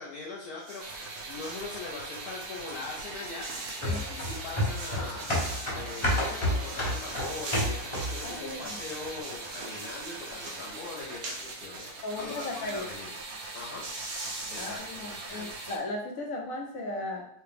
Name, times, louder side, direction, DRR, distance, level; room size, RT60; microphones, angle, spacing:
voice 1, 0.0-13.1 13.5-13.8 14.5-15.5, left 3 dB, 85° left, -6 dB, 1.3 m, -41 dB
sound 1, 0.6-1.7 2.1-12.7 13.0-13.1 13.3-14.8, right 2 dB, 85° right, 1.3 m, -43 dB
sound 2, 0.8-15.8, right 3 dB, 60° right, 0.8 m, -41 dB
sound 3, 3.8-8.3 8.7-8.8, left 1 dB, 25° left, 0.7 m, -30 dB
voice 2, 8.2-8.8 12.0-12.9 14.6-17.3, left 2 dB, 65° left, 0 dB, 1.2 m, -36 dB
4.7 x 2.2 x 3.3 m, 0.72 s
omnidirectional pair, 1.6 m